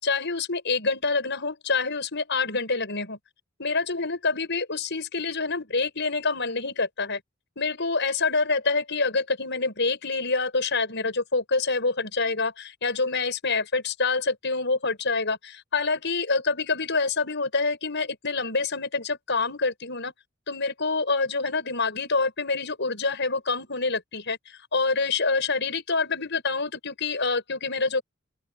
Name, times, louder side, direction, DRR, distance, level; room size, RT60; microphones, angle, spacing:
voice 1, 0.0-3.2 3.6-7.2 7.6-20.1 20.5-28.0, left 4 dB, 60° left, 7.3 m, -26 dB
open air
head